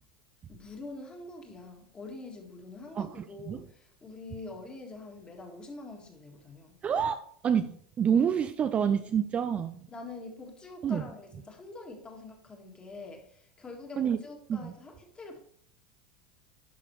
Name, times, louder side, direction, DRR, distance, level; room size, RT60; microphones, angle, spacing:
voice 1, 0.5-6.8 9.9-15.4, left 3 dB, 20° left, 1.6 m, -45 dB
voice 2, 2.9-3.6 6.8-7.2 7.4-9.9 10.8-11.1 14.0-14.2 14.5-14.7, right 8 dB, 25° right, 0.4 m, -28 dB
11.0 x 4.1 x 3.1 m
supercardioid pair, 120°, 5 cm